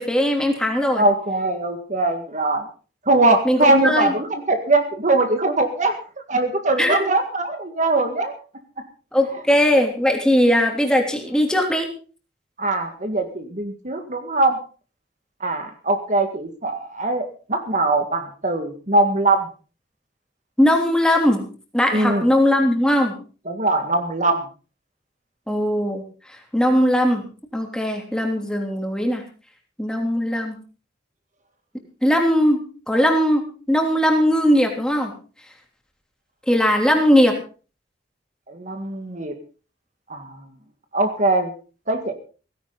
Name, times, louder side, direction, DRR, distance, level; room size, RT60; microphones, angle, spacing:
voice 1, 0.0-1.0 3.4-4.1 6.8-7.1 9.1-11.9 20.6-21.4 21.7-23.1 25.5-26.0 26.5-27.2 27.5-29.2 29.8-30.6 32.0-32.6 32.9-33.4 33.7-35.1 36.5-37.4, equal, 5° left, 2 dB, 3.2 m, -19 dB
voice 2, 1.0-2.7 3.1-6.0 6.3-8.3 12.6-14.6 15.4-19.5 21.9-22.2 23.5-24.4 38.5-39.4 40.1-40.4 40.9-41.5 41.9-42.1, right 2 dB, 45° right, 6 dB, 1.9 m, -21 dB
17.0 x 16.0 x 4.0 m, 0.37 s
head